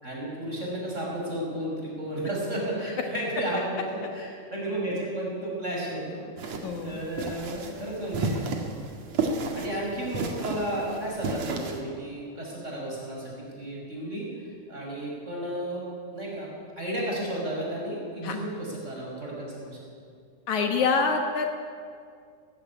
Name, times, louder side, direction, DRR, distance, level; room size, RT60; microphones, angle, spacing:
voice 1, 0.0-8.5 9.2-14.3 14.7-16.5 16.8-19.8, right 1 dB, 20° right, -3 dB, 6.3 m, -33 dB
sound 1, 6.4-11.8, right 3 dB, 60° right, 3.0 m, -32 dB
voice 2, 6.6-7.0 18.2-18.4 20.5-21.5, left 4 dB, 70° left, 4 dB, 2.7 m, -25 dB
18.5 x 15.5 x 10.0 m, 2.2 s
omnidirectional pair, 3.6 m